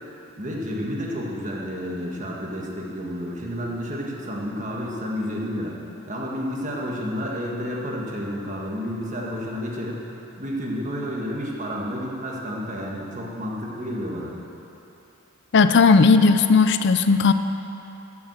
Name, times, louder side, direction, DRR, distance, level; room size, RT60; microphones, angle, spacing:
voice 1, 0.4-5.7 6.1-10.1 10.4-14.3, equal, 35° right, -2 dB, 1.5 m, -30 dB
voice 2, 15.5-17.3, left 4 dB, 55° left, 10 dB, 0.5 m, -16 dB
11.5 x 7.1 x 7.3 m, 3.0 s
head